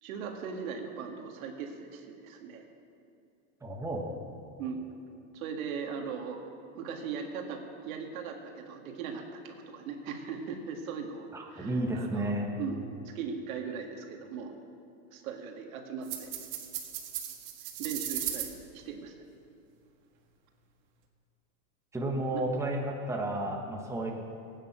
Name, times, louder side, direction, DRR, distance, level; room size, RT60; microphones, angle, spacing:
voice 1, 0.0-2.6 4.6-4.8 5.3-6.4 6.7-12.3 12.6-12.8 13.1-14.5 15.1-16.3 17.8-19.2 22.3-22.4, right 6 dB, 75° right, 3 dB, 1.9 m, -39 dB
voice 2, 3.6-4.0 11.3-12.5 21.9-24.1, right 1 dB, 5° right, 0 dB, 1.4 m, -32 dB
sound 1, 16.0-18.5, right 11 dB, 50° right, 1.7 m, -37 dB
16.5 x 9.1 x 6.1 m, 2.5 s
supercardioid pair, 135°, 42 cm